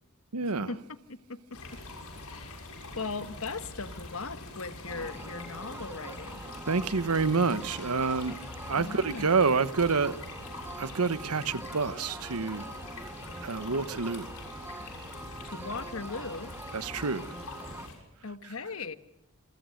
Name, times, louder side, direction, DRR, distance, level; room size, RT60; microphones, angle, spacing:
voice 1, 0.3-0.7 6.7-8.4 8.7-10.2 10.8-12.7 13.4-14.3 16.7-17.3, right 4 dB, 85° right, 1.1 m, -28 dB
voice 2, 1.1-1.6 2.2-2.6 2.9-6.4 8.7-9.4 15.4-16.5 18.2-19.0, left 4 dB, 70° left, 1.4 m, -38 dB
sound 1, 1.5-18.0, left 2 dB, 85° left, 6.7 m, -44 dB
sound 2, 4.7-9.7 9.9-10.3 10.7-11.8 12.9-13.4 13.9-14.0, left 5 dB, 55° left, 6.6 m, -60 dB
sound 3, 4.9-17.9, right 2 dB, 10° right, 1.1 m, -44 dB
27.5 x 23.5 x 6.5 m
head